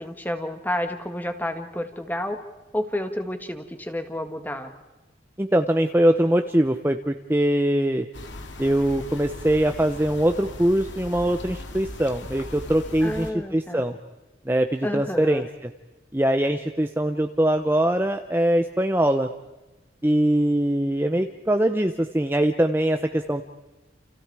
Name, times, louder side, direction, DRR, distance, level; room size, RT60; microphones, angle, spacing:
voice 1, 0.0-2.4 2.7-4.7 13.0-13.8 14.8-15.5, left 1 dB, 10° left, 7 dB, 1.8 m, -30 dB
voice 2, 5.4-8.1 8.6-14.0 14.5-15.5 16.1-19.3 20.0-23.4, right 1 dB, 10° right, 6 dB, 0.8 m, -22 dB
sound 1, 8.1-13.3, left 2 dB, 85° left, 2.5 m, -39 dB
29.5 x 29.0 x 4.9 m, 1.1 s
head